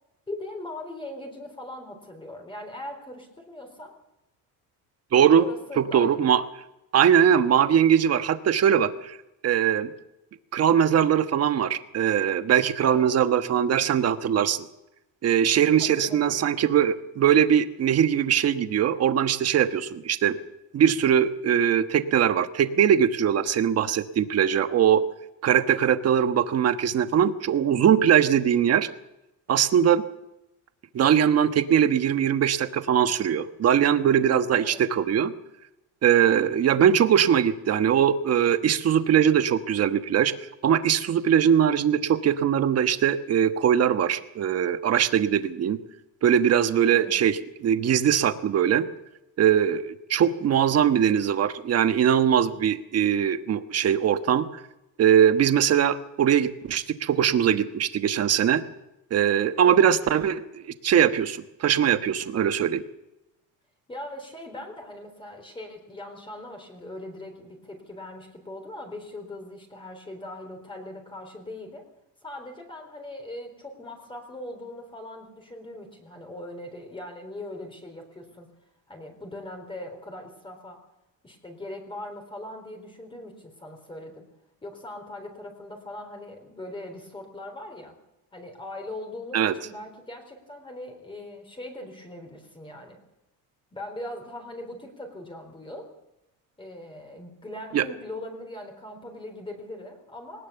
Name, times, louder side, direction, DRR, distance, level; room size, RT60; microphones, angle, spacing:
voice 1, 0.3-4.0 5.4-6.2 12.8-14.1 15.8-16.3 34.6-34.8 46.8-47.2 59.6-59.8 63.9-71.9 72.2-78.5 78.9-80.8 81.2-84.3 84.6-87.9 88.3-93.0 93.7-95.9 96.6-100.5, left 1 dB, 15° left, 3 dB, 4.1 m, -40 dB
voice 2, 5.1-5.4 5.8-6.4 6.9-9.2 9.4-9.9 10.5-14.7 15.2-20.4 20.7-25.0 25.4-28.9 29.5-30.0 30.9-35.3 36.0-40.3 40.6-45.8 46.2-48.8 49.4-54.4 55.0-58.6 59.1-62.8 89.3-89.5 97.7-97.8, right 9 dB, 40° right, 9 dB, 1.3 m, -21 dB
20.5 x 19.5 x 7.0 m, 0.91 s
cardioid pair, 140°, 38 cm